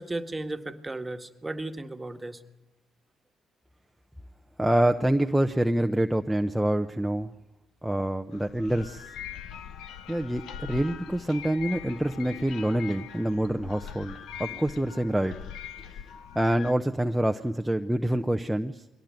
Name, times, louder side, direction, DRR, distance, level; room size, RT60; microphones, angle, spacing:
voice 1, 0.0-2.4, right 2 dB, 20° right, 7 dB, 1.7 m, -35 dB
voice 2, 4.6-7.3 7.8-9.1 10.1-15.4 15.9-16.0 16.3-18.8, right 1 dB, 5° right, 4 dB, 0.9 m, -26 dB
sound 1, 8.3-16.7, left 9 dB, 75° left, 1.0 m, -42 dB
22.5 x 17.5 x 9.3 m, 1.0 s
supercardioid pair, 60°, 0 cm